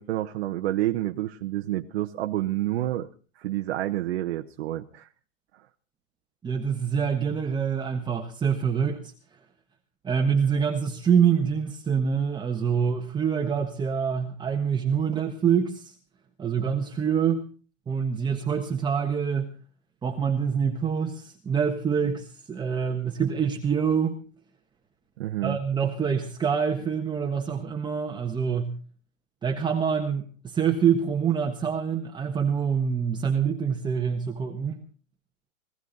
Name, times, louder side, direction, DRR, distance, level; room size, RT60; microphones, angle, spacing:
voice 1, 0.0-3.1 3.4-5.1 25.2-25.6, right 14 dB, 55° right, 5 dB, 1.2 m, -29 dB
voice 2, 6.4-9.1 10.0-15.9 16.4-17.4 17.9-19.5 20.0-24.2 25.4-28.8 29.4-34.8, right 7 dB, 10° right, 3 dB, 1.3 m, -26 dB
19.5 x 15.5 x 4.1 m, 0.38 s
hypercardioid pair, 135°, 39 cm